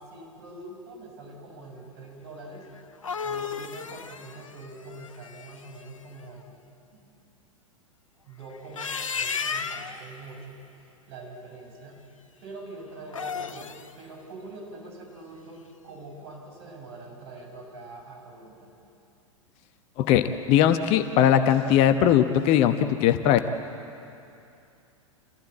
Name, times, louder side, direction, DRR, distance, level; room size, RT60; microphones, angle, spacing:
voice 1, 0.0-2.7 3.2-7.1 8.2-10.6 11.1-12.0 12.4-18.7, right 2 dB, 50° right, -1 dB, 7.0 m, -44 dB
sound 1, 2.8-5.8 8.5-10.0 13.0-13.9, left 6 dB, 70° left, 1.1 m, -34 dB
voice 2, 20.0-23.4, left 10 dB, 35° left, 9 dB, 1.0 m, -20 dB
27.5 x 15.5 x 8.7 m, 2.6 s
figure-of-eight pair, 95°, 17 cm